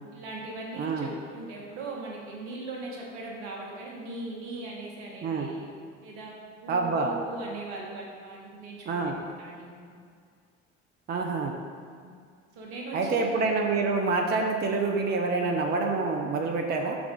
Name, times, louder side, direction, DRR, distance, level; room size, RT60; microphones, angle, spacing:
voice 1, 0.1-5.7 6.0-9.1 9.4-9.9 11.9-12.1 12.5-13.3, right 2 dB, 65° right, -2 dB, 1.2 m, -39 dB
voice 2, 0.8-1.1 5.2-5.5 6.7-7.1 8.9-9.2 11.1-11.5 12.9-17.0, right 3 dB, 30° right, 2 dB, 0.6 m, -27 dB
5.9 x 3.7 x 5.3 m, 2.1 s
figure-of-eight pair, 50°, 36 cm